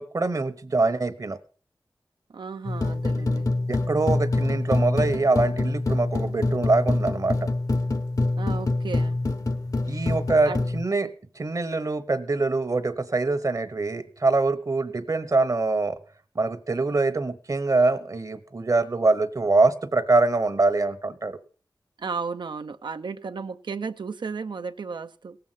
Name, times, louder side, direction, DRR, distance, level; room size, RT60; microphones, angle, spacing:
voice 1, 0.0-1.4 3.7-7.4 9.9-16.0 16.3-21.4, right 3 dB, 50° right, 12 dB, 0.9 m, -24 dB
voice 2, 2.3-3.5 8.4-9.2 9.9-10.1 10.4-10.6 22.0-25.4, right 5 dB, 85° right, 9 dB, 0.6 m, -34 dB
sound 1, 2.6-10.8, left 2 dB, 50° left, 0.8 m, -26 dB
18.0 x 7.8 x 5.6 m, 0.42 s
wide cardioid pair, 70°, 8 cm